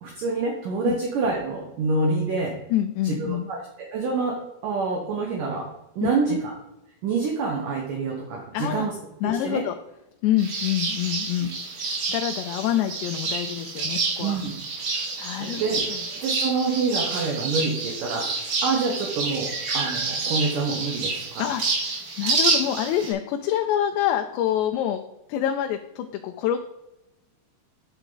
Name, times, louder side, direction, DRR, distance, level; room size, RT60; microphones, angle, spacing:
voice 1, 0.0-2.5 3.0-3.6 3.9-4.4 4.6-5.6 6.0-6.5 7.0-8.9 9.4-9.6 14.2-14.5 15.4-15.8 16.2-21.4, right 4 dB, 65° right, 0 dB, 2.3 m, -26 dB
voice 2, 2.7-3.5 6.0-6.4 8.5-8.9 9.2-9.7 10.2-14.4 15.2-15.6 15.9-16.0 21.4-25.0 25.3-26.6, left 11 dB, 90° left, 5 dB, 2.8 m, -26 dB
sound 1, 10.4-23.1, right 4 dB, 50° right, 2.9 m, -28 dB
9.0 x 8.1 x 3.9 m, 0.94 s
omnidirectional pair, 4.9 m